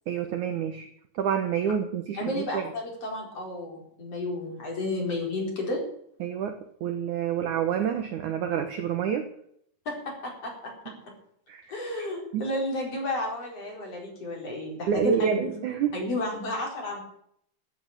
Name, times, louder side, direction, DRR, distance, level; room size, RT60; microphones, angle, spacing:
voice 1, 0.1-0.9 1.1-2.7 6.2-9.3 11.5-11.7 12.3-12.5 14.9-16.1, right 7 dB, 70° right, 7 dB, 1.9 m, -28 dB
voice 2, 2.1-5.8 9.9-10.0 10.2-10.7 11.7-15.6 15.9-17.0, left 2 dB, 35° left, 0 dB, 5.3 m, -32 dB
14.5 x 8.8 x 8.9 m, 0.70 s
omnidirectional pair, 4.9 m